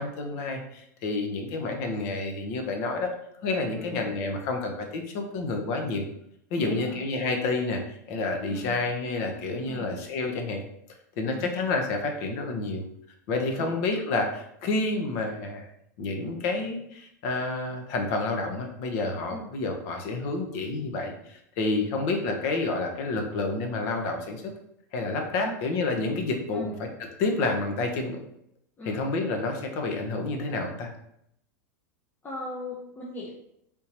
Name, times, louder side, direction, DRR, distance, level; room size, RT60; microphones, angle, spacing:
voice 1, 0.0-3.1 3.4-6.0 6.5-10.6 11.2-12.8 13.3-15.7 16.0-24.4 24.9-26.9 27.2-28.2 28.8-30.9, left 3 dB, 55° left, 3 dB, 0.8 m, -29 dB
voice 2, 3.8-4.1 6.6-7.0 8.5-8.8 9.7-10.0 11.3-11.5 13.6-13.8 19.3-19.5 21.8-22.0 25.4-25.5 26.5-26.7 28.8-29.0 32.2-33.3, left 1 dB, 20° left, -4 dB, 0.7 m, -39 dB
3.6 x 2.7 x 2.9 m, 0.74 s
hypercardioid pair, 120°, 10 cm